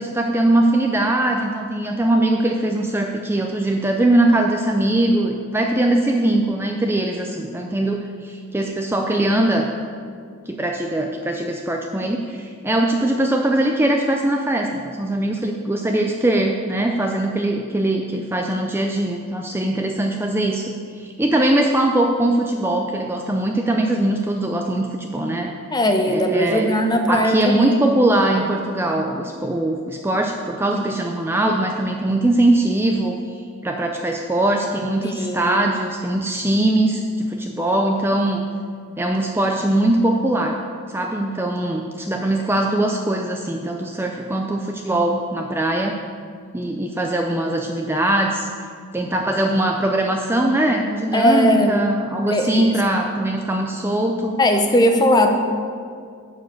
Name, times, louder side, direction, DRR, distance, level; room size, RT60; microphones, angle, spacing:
voice 1, 0.0-9.7 10.5-25.5 26.1-26.7 27.1-38.4 39.0-40.6 40.9-46.0 46.5-48.5 48.9-54.4, right 1 dB, 10° right, 2 dB, 0.4 m, -21 dB
voice 2, 25.7-27.7 35.0-35.5 51.1-51.8 52.3-52.7 54.4-55.3, left 1 dB, 20° left, 4 dB, 0.8 m, -18 dB
11.0 x 4.8 x 7.9 m, 2.2 s
head